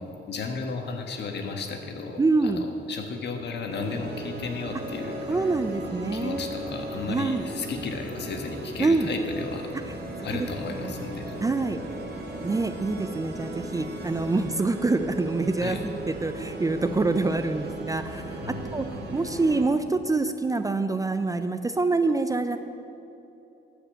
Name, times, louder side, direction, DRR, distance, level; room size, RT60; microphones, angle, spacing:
voice 1, 0.0-5.4 6.1-9.7 10.2-11.3 15.6-15.8 18.4-18.6, left 4 dB, 60° left, 4 dB, 1.4 m, -34 dB
voice 2, 2.2-2.6 5.3-6.4 7.1-7.5 8.8-9.1 10.2-10.5 11.4-11.8 12.4-18.9 19.1-22.6, right 3 dB, 15° right, 9 dB, 0.4 m, -26 dB
sound 1, 3.7-19.6, right 1 dB, 55° right, 2.0 m, -37 dB
12.5 x 5.2 x 7.5 m, 2.9 s
cardioid pair, 90°, 20 cm